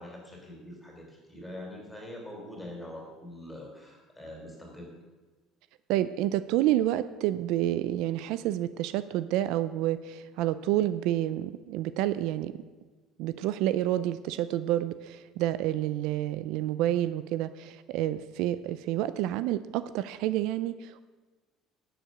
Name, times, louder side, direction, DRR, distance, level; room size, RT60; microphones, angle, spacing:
voice 1, 0.0-4.9, left 1 dB, 5° left, 0 dB, 3.5 m, -44 dB
voice 2, 5.9-12.5 13.2-21.0, right 13 dB, 75° right, 14 dB, 0.4 m, -29 dB
11.5 x 7.8 x 6.5 m, 1.3 s
cardioid pair, 125°, 0 cm